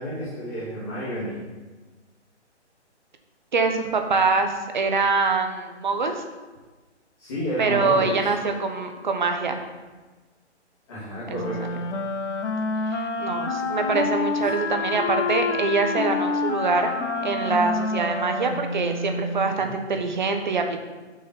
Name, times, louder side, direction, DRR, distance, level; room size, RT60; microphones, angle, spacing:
voice 1, 0.0-1.4 7.2-8.3 10.9-11.8 19.5-19.7, equal, 20° left, -10 dB, 2.9 m, -30 dB
voice 2, 3.5-6.2 7.6-9.6 11.3-11.4 12.9-16.9 17.2-20.8, right 4 dB, 40° right, 5 dB, 1.3 m, -24 dB
Wind instrument woodwind instrument, 11.3-19.5, left 3 dB, 75° left, 1.5 m, -28 dB
12.0 x 6.3 x 5.6 m, 1.3 s
hypercardioid pair, 175°, 35 cm